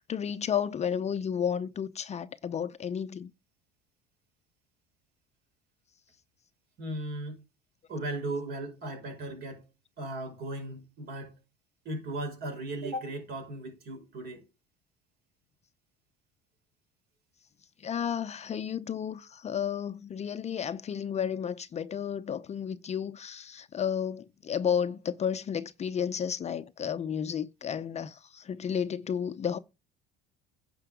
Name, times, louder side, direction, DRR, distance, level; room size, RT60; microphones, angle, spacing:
voice 1, 0.1-3.3 17.8-29.6, left 8 dB, 35° left, 0.6 m, -32 dB
voice 2, 6.8-7.4 7.9-9.6 10.0-11.4 11.9-14.4, right 1 dB, 50° right, 5.2 m, -37 dB
9.9 x 5.7 x 5.1 m
supercardioid pair, 105°, 20 cm